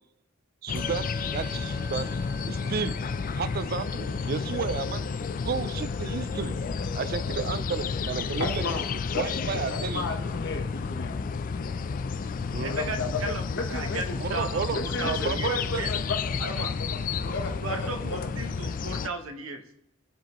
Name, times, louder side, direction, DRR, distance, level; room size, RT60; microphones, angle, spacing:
voice 1, 0.6-2.1 2.5-3.0 3.4-5.1 5.4-6.6 6.9-8.6 9.1-10.1 12.5-12.7 14.2-15.8 17.2-17.4, right 6 dB, 50° right, 15 dB, 0.4 m, -32 dB
sound 1, 0.7-19.1, left 5 dB, 40° left, 0.4 m, -31 dB
Musical instrument, 0.7-10.3, left 1 dB, 10° left, 2.0 m, -47 dB
voice 2, 8.4-8.8 9.1-11.6 12.7-14.2 14.7-17.0 17.3-18.3, left 3 dB, 60° left, 4 dB, 1.1 m, -34 dB
voice 3, 12.6-15.9 16.4-16.7 17.6-19.6, right 2 dB, 85° right, 5 dB, 0.9 m, -36 dB
15.5 x 5.1 x 3.0 m, 0.79 s
head